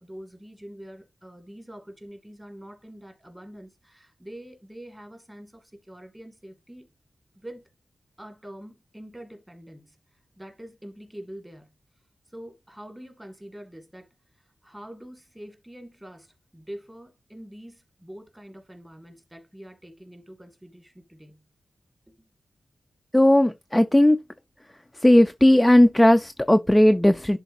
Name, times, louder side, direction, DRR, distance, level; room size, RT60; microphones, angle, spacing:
voice 1, 0.0-6.9 7.3-7.6 8.2-11.7 12.3-21.4 22.1-22.3, equal, 10° right, 2.1 m, -45 dB
voice 2, 23.1-24.2 25.0-27.4, left 1 dB, 10° left, 0.4 m, -17 dB
11.0 x 4.0 x 2.6 m
wide cardioid pair, 120°, 0 cm